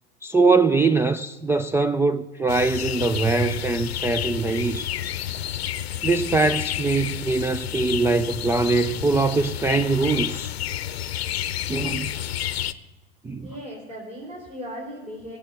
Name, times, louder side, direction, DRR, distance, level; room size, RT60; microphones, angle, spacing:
voice 1, 0.2-5.0 6.0-10.5 11.7-12.2 13.2-13.5, right 3 dB, 10° right, 0.4 m, -22 dB
sound 1, 2.5-12.7, left 11 dB, 80° left, 0.7 m, -30 dB
voice 2, 13.4-15.4, equal, 25° right, 4.6 m, -37 dB
17.5 x 7.5 x 7.8 m
hypercardioid pair, 85°, 31 cm